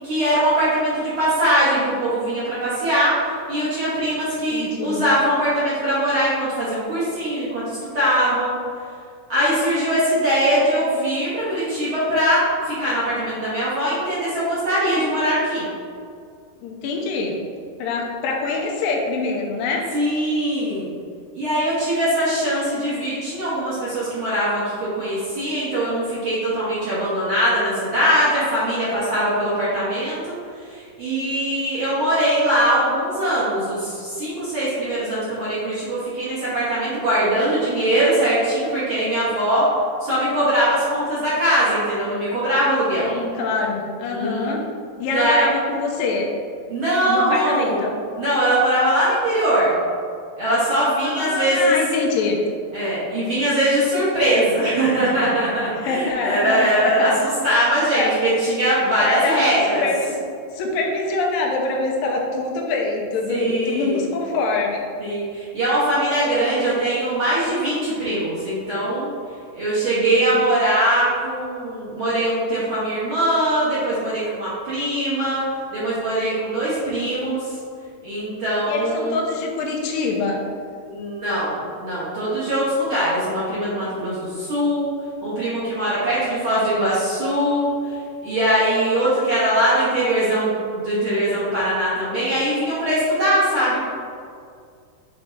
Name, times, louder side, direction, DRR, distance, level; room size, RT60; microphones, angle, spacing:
voice 1, 0.0-8.6 9.3-15.7 19.9-20.9 21.3-39.6 40.0-43.1 44.1-44.6 45.1-45.5 46.7-47.8 48.2-49.8 50.4-51.7 52.7-59.9 63.3-64.0 65.0-69.1 69.5-75.4 75.7-77.5 78.0-79.2 80.8-84.9 85.2-93.8, right 1 dB, 45° right, -10 dB, 1.8 m, -21 dB
voice 2, 4.5-5.0 16.6-17.4 17.8-19.9 43.0-44.6 45.0-46.3 47.1-47.9 51.0-52.4 55.8-57.1 57.6-58.1 59.0-60.2 60.5-64.8 69.8-70.4 78.7-80.5 86.1-86.9, left 3 dB, 85° left, 0 dB, 2.4 m, -25 dB
7.8 x 4.0 x 3.7 m, 2.2 s
omnidirectional pair, 4.1 m